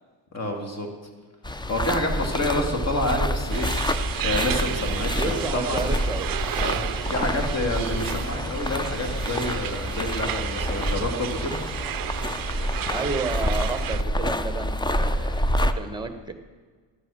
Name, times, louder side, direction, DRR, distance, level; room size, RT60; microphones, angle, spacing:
voice 1, 0.3-0.9 1.7-3.7 4.2-5.9 6.6-6.8 7.1-11.6, left 1 dB, 30° left, 3 dB, 2.4 m, -28 dB
sound 1, 1.4-15.7, equal, 10° left, 0.5 m, -28 dB
sound 2, 3.5-14.0, right 12 dB, 45° right, 0.5 m, -33 dB
voice 2, 5.2-6.3 6.5-6.8 12.9-16.3, right 3 dB, 10° right, 8 dB, 1.3 m, -31 dB
12.5 x 7.6 x 6.3 m, 1.5 s
cardioid pair, 80°, 49 cm